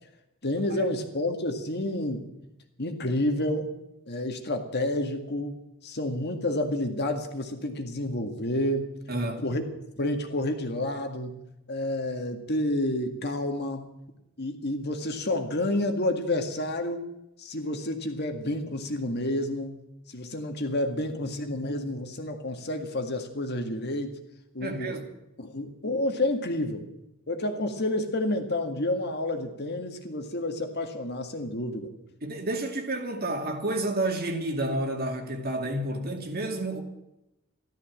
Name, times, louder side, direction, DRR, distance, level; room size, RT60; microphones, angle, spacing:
voice 1, 0.4-2.3 2.8-3.7 4.1-5.6 5.8-8.9 9.4-9.6 9.9-11.4 11.7-13.9 14.4-17.0 17.4-19.8 20.1-24.2 24.5-25.0 25.4-26.9 27.3-31.9, left 1 dB, 50° left, 1.9 m, -29 dB
voice 2, 9.1-9.4 24.6-25.1 32.2-36.8, right 1 dB, 45° right, 2.4 m, -30 dB
14.5 x 13.0 x 7.4 m
head